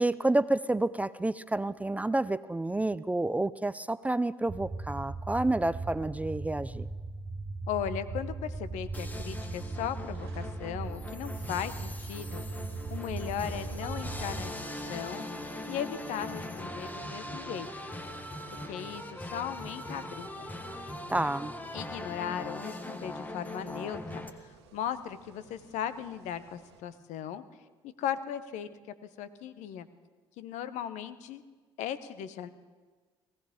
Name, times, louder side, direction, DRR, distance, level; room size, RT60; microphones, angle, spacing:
voice 1, 0.0-6.9 21.1-21.5, right 2 dB, 10° right, 17 dB, 0.4 m, -29 dB
sound 1, 4.5-14.5, right 3 dB, 35° right, 1.0 m, -38 dB
voice 2, 7.7-12.6 12.9-14.5 14.9-15.2 15.7-17.7 18.7-20.5 21.7-27.4 27.8-28.7 29.2-29.9 30.4-31.4 31.8-32.5, left 9 dB, 65° left, 13 dB, 0.9 m, -37 dB
sound 2, 8.9-24.3, left 1 dB, 10° left, 1.5 m, -41 dB
sound 3, 9.4-26.8, right 5 dB, 85° right, 1.3 m, -55 dB
19.0 x 16.0 x 3.7 m, 1.4 s
hypercardioid pair, 55°, 13 cm